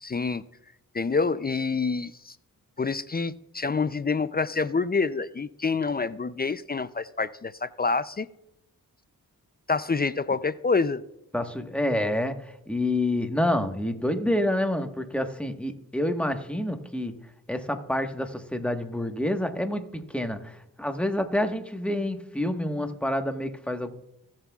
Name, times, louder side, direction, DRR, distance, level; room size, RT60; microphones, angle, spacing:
voice 1, 0.0-0.4 0.9-2.3 2.8-8.3 9.7-11.0, left 4 dB, 25° left, 0.5 m, -27 dB
voice 2, 11.3-17.2 17.5-23.9, left 1 dB, 5° left, 1.4 m, -28 dB
17.0 x 7.4 x 2.4 m
supercardioid pair, 40°, 36 cm